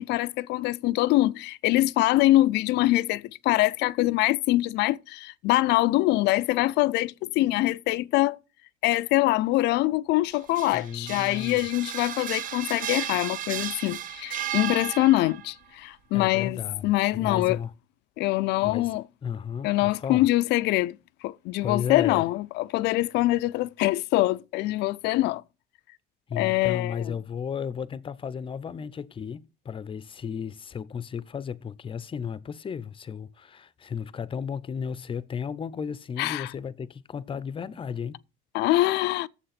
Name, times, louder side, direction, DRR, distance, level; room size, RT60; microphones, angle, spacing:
voice 1, 0.0-8.4 8.8-17.6 18.2-19.0 19.6-21.0 21.2-25.4 26.3-27.2 36.2-36.5 38.5-39.3, left 17 dB, 85° left, 0.4 m, -24 dB
sound 1, 10.3-15.5, right 11 dB, 50° right, 0.5 m, -34 dB
voice 2, 10.7-11.6 16.1-17.7 18.6-18.9 19.2-20.3 21.6-22.2 26.3-38.2, left 7 dB, 30° left, 0.6 m, -34 dB
7.4 x 6.7 x 5.8 m
cardioid pair, 110°, 17 cm